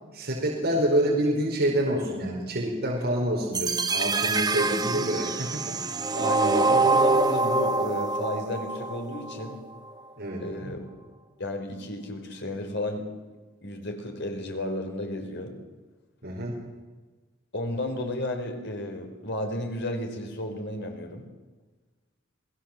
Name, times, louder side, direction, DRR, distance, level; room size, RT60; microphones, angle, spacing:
voice 1, 0.1-5.8 10.2-10.7 16.2-16.6, right 1 dB, 55° right, -2 dB, 5.1 m, -27 dB
sound 1, 3.5-9.6, right 3 dB, 20° right, 1.1 m, -25 dB
voice 2, 6.2-9.6 10.4-10.8 11.4-13.1 13.6-15.5 17.5-21.2, left 1 dB, 60° left, 4 dB, 4.6 m, -33 dB
27.5 x 19.0 x 7.6 m, 1.3 s
head